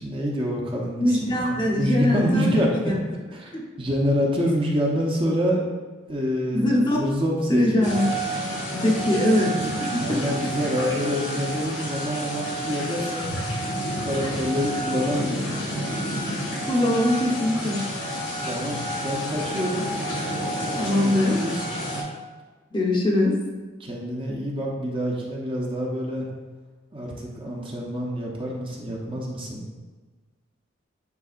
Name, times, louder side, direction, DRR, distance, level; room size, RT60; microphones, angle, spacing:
voice 1, 0.0-2.9 3.3-3.5 3.8-5.6 6.1-7.9 9.9-13.2 13.9-15.6 18.4-19.9 20.7-21.6 23.8-26.3 26.9-29.7, equal, 25° right, -2 dB, 0.8 m, -27 dB
voice 2, 1.0-2.9 3.5-3.6 6.5-7.0 7.5-8.1 8.7-9.5 9.8-10.2 16.7-17.8 20.8-21.4 22.7-23.3, left 1 dB, 25° left, -2 dB, 0.8 m, -22 dB
sound 1, 7.8-22.0, right 1 dB, 80° left, 1.9 m, -29 dB
9.5 x 4.1 x 2.5 m, 1.3 s
head